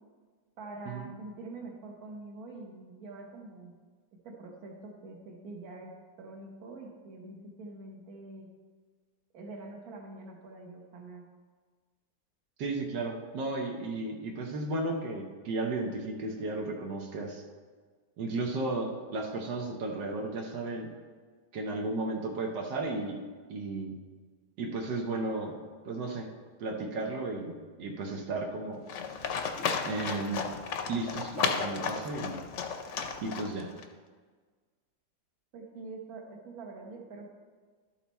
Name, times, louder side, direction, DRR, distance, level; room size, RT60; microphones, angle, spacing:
voice 1, 0.6-3.7 4.2-8.5 9.3-11.2 35.5-37.3, right 2 dB, 60° right, 1 dB, 1.7 m, -45 dB
voice 2, 12.6-17.4 18.2-20.9 21.5-23.2 23.5-24.0 24.6-25.5 25.8-26.3 26.6-28.8 29.8-30.5 30.9-32.4 33.2-33.7, right 2 dB, 85° right, 1 dB, 1.6 m, -34 dB
Livestock farm animals working animals, 28.9-33.8, left 6 dB, 60° left, 0.8 m, -33 dB
12.0 x 5.8 x 4.1 m, 1.5 s
omnidirectional pair, 1.8 m